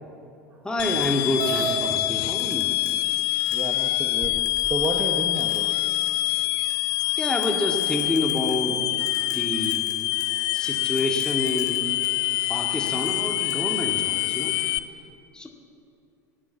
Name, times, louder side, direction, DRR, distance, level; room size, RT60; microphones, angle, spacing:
voice 1, 0.6-2.7 7.2-8.8 9.3-9.9 10.5-11.9 12.5-14.5 15.3-15.5, left 1 dB, 10° left, 1 dB, 2.0 m, -28 dB
sound 1, 0.8-14.8, left 17 dB, 45° left, 0.5 m, -25 dB
sound 2, 1.0-1.1 2.4-3.8 4.5-5.1 5.4-6.2 6.7-6.9 7.2-8.7 9.1-12.5 12.9-13.7, left 2 dB, 85° left, 2.0 m, -44 dB
sound 3, 1.4-1.8 2.8-2.9 3.5-3.6 4.2-4.9, right 4 dB, 55° right, 2.3 m, -31 dB
voice 2, 3.5-5.7, right 2 dB, 20° right, 3 dB, 1.3 m, -31 dB
19.5 x 8.6 x 7.3 m, 2.6 s
figure-of-eight pair, 75°, 9 cm